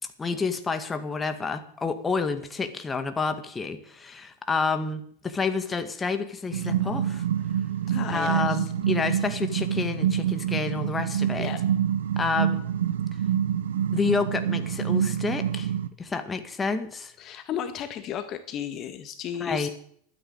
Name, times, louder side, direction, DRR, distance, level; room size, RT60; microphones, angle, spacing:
voice 1, 0.0-7.2 8.1-11.5 12.2-12.6 13.9-15.7 16.0-17.1 19.4-19.7, left 4 dB, 20° left, 7 dB, 2.0 m, -29 dB
sound 1, 6.5-15.9, right 9 dB, 80° right, 1.0 m, -27 dB
voice 2, 7.9-8.7 11.4-11.6 17.2-19.7, left 9 dB, 40° left, 9 dB, 1.7 m, -34 dB
12.5 x 10.0 x 9.1 m, 0.64 s
hypercardioid pair, 90°, 0 cm